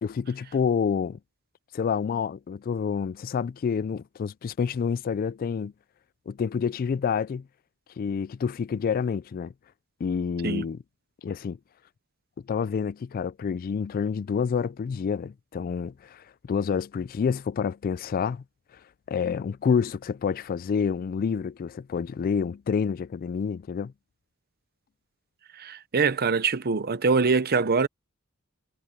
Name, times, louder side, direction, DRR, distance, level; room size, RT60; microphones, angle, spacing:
voice 1, 0.0-1.2 1.7-5.7 6.3-7.5 8.0-9.5 10.0-10.8 11.2-11.6 12.5-18.4 19.1-23.9, left 6 dB, 40° left, 0.3 m, -28 dB
voice 2, 25.5-27.9, right 4 dB, 50° right, 0.8 m, -24 dB
head